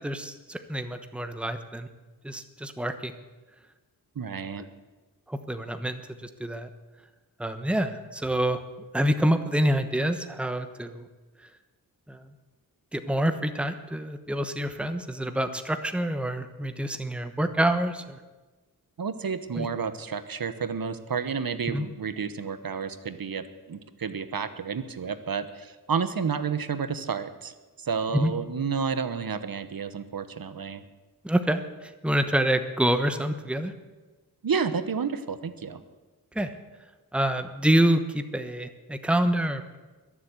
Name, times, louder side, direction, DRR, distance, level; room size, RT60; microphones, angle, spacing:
voice 1, 0.0-1.9 2.2-3.1 5.3-6.7 7.4-8.6 8.9-11.1 12.1-12.2 12.9-18.2 19.5-19.7 21.7-21.9 28.1-28.3 31.2-33.7 36.3-36.5 37.1-39.8, right 1 dB, 5° right, 8 dB, 1.1 m, -27 dB
voice 2, 4.1-4.6 19.0-30.8 34.4-35.8, right 6 dB, 65° right, 11 dB, 1.1 m, -31 dB
22.0 x 7.4 x 8.2 m, 1.2 s
wide cardioid pair, 70°, 37 cm